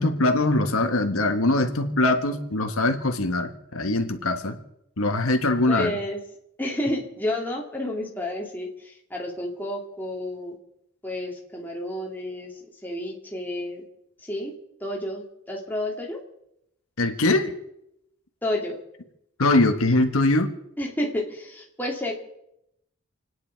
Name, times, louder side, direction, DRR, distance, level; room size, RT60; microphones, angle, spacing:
voice 1, 0.0-4.6 5.0-5.9 17.0-17.5 19.4-20.5, left 2 dB, 85° left, 6 dB, 1.5 m, -22 dB
voice 2, 5.7-6.2 6.6-10.6 11.0-13.8 14.2-14.5 14.8-16.2 18.4-18.8 20.8-22.1, left 1 dB, 10° left, -1 dB, 2.2 m, -30 dB
28.0 x 9.7 x 4.6 m, 0.81 s
head